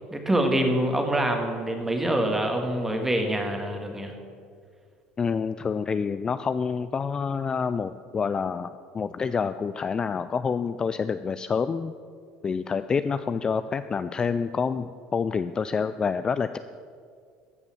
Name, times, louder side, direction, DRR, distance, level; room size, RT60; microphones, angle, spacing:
voice 1, 0.1-4.2, right 1 dB, 10° right, 4 dB, 1.7 m, -25 dB
voice 2, 5.2-11.9 12.4-16.6, left 5 dB, 25° left, 12 dB, 0.3 m, -27 dB
14.5 x 5.5 x 7.0 m, 2.1 s
supercardioid pair, 115°, 3 cm